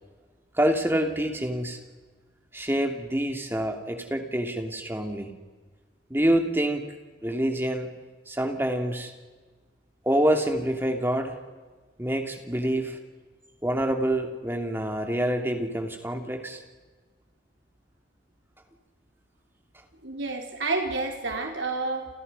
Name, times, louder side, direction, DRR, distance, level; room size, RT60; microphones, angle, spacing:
voice 1, 0.6-1.8 2.5-5.3 6.1-6.8 7.2-7.9 8.3-9.1 10.0-11.4 12.0-13.0 13.6-16.6, right 1 dB, 10° right, 4 dB, 2.8 m, -26 dB
voice 2, 20.0-22.1, right 3 dB, 85° right, 2 dB, 3.8 m, -29 dB
29.5 x 29.0 x 5.5 m, 1.4 s
head